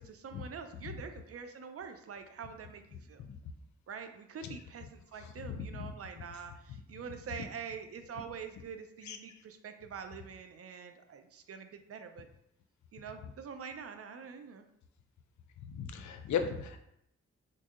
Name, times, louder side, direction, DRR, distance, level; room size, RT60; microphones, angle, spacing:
voice 1, 0.0-3.2 3.9-12.3 12.9-14.7, right 6 dB, 55° right, 7 dB, 0.5 m, -45 dB
voice 2, 5.4-5.9 9.1-9.2 15.7-16.8, left 7 dB, 75° left, 7 dB, 0.5 m, -36 dB
3.9 x 2.5 x 2.4 m, 0.77 s
cardioid pair, 45°, 29 cm